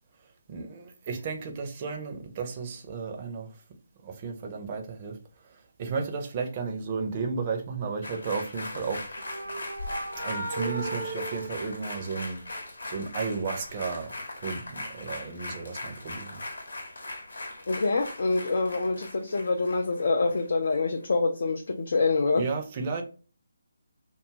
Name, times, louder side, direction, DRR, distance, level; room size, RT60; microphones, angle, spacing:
voice 1, 0.5-3.6 4.0-9.0 10.2-12.4 12.8-16.4 16.7-16.8 22.4-23.0, right 5 dB, 30° right, 0.6 m, -33 dB
sound 1, 8.0-20.7 21.1-21.2, left 2 dB, 75° left, 0.8 m, -40 dB
sound 2, 8.6-12.5, right 2 dB, 85° right, 0.8 m, -37 dB
voice 2, 17.7-22.4, left 3 dB, 60° left, 0.3 m, -26 dB
2.6 x 2.3 x 2.7 m
figure-of-eight pair, 150°, 0 cm